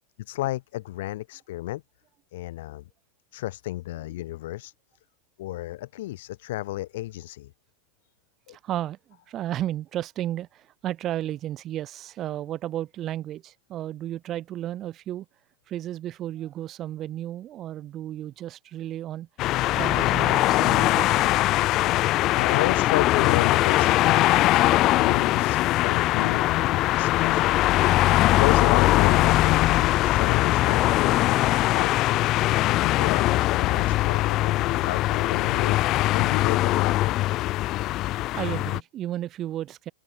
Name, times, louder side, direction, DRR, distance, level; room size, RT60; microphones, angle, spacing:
voice 1, 0.3-1.8 2.3-2.8 3.3-4.7 5.4-7.5 8.5-8.6 22.4-27.6 28.2-35.8 36.1-37.2, left 16 dB, 55° left, 4.0 m, -32 dB
voice 2, 8.5-9.0 9.3-15.3 15.7-19.3 19.7-21.4 38.0-39.9, right 12 dB, 30° right, 2.8 m, -33 dB
sound 1, 19.4-38.8, left 16 dB, 35° left, 0.8 m, -21 dB
open air
figure-of-eight pair, 90°, 0 cm